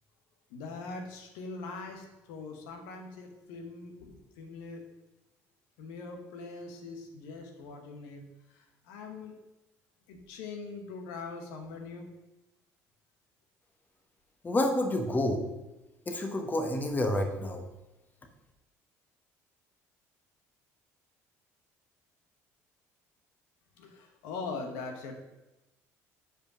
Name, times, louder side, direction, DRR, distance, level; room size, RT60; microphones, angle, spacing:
voice 1, 0.5-4.8 5.8-8.3 8.5-9.3 10.1-12.1 23.8-25.2, left 4 dB, 85° left, 4 dB, 1.1 m, -42 dB
voice 2, 14.4-15.4 16.1-17.6, left 1 dB, 25° left, 4 dB, 1.2 m, -29 dB
5.2 x 5.1 x 6.3 m, 1.0 s
supercardioid pair, 80°, 7 cm